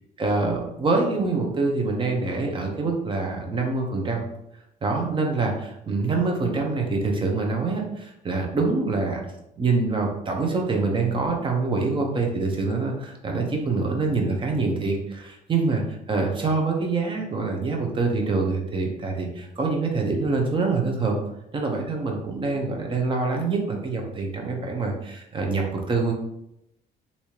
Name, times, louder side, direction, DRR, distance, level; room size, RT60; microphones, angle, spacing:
voice 1, 0.2-4.2 4.8-9.2 9.6-15.8 16.1-21.2 21.5-26.1, right 3 dB, 30° right, 1 dB, 0.8 m, -25 dB
3.3 x 2.7 x 2.9 m, 0.83 s
cardioid pair, 110°, 17 cm